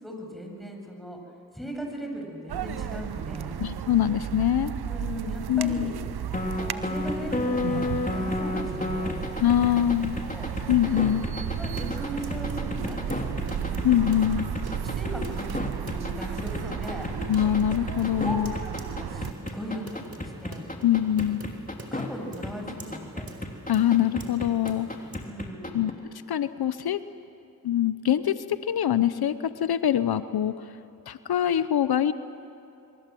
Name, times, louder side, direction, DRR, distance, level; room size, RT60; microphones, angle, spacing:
voice 1, 0.0-1.2 1.5-3.5 4.9-5.9 6.7-9.2 10.3-10.5 11.6-13.8 14.9-17.1 18.2-20.7 21.8-23.2 25.2-25.9, equal, ahead, 1 dB, 7.8 m, -38 dB
sound 1, 2.5-19.3, right 9 dB, 90° right, 0.8 m, -34 dB
voice 2, 3.6-4.7 5.5-5.9 9.4-10.2 10.7-11.3 13.8-14.5 17.3-18.5 20.8-21.5 23.7-24.9 25.7-25.9 26.3-27.0 27.6-30.7 31.1-32.1, left 11 dB, 80° left, 13 dB, 0.8 m, -24 dB
sound 2, 6.3-22.1 22.4-25.9, left 2 dB, 20° left, 3.6 m, -32 dB
sound 3, 11.4-25.2, right 2 dB, 40° right, 4.3 m, -45 dB
27.5 x 23.0 x 7.7 m, 2.8 s
cardioid pair, 40°, 37 cm